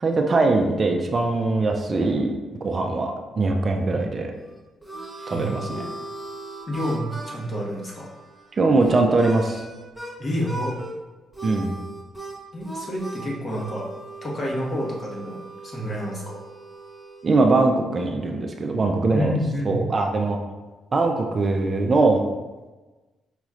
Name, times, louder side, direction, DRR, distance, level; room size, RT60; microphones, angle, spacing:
voice 1, 0.0-2.3 2.6-4.3 5.3-5.8 8.5-9.6 11.4-11.8 17.2-19.3 19.7-20.4 20.9-22.2, right 3 dB, 35° right, 3 dB, 0.4 m, -21 dB
Harmonica, 4.3-10.1 10.4-10.9 11.3-17.3, right 2 dB, 5° left, 0.8 m, -38 dB
voice 2, 5.2-5.8 6.7-8.1 10.2-10.7 12.5-13.9 14.2-15.4 15.6-16.4 19.1-19.9, equal, 40° left, -3 dB, 1.1 m, -29 dB
5.0 x 3.0 x 2.4 m, 1.2 s
cardioid pair, 90°, 0 cm